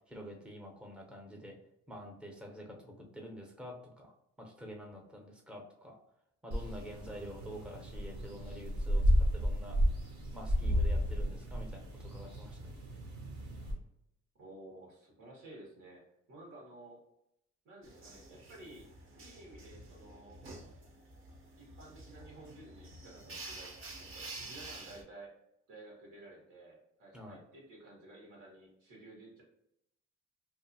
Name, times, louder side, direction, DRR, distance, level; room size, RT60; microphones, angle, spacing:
voice 1, 0.1-1.6 1.9-4.1 4.4-6.0 6.4-9.8 10.3-12.7 27.1-27.4, equal, 5° right, 0 dB, 0.6 m, -48 dB
sound 1, 6.5-13.7, equal, 65° right, 0.9 m, -32 dB
voice 2, 7.0-7.4 14.4-16.0 16.3-17.0 17.6-18.9 19.2-20.4 21.6-25.3 25.7-29.4, right 2 dB, 85° right, -2 dB, 1.3 m, -53 dB
sound 2, 17.8-25.0, right 2 dB, 45° right, 0.7 m, -49 dB
2.6 x 2.4 x 2.6 m, 0.79 s
cardioid pair, 90°, 30 cm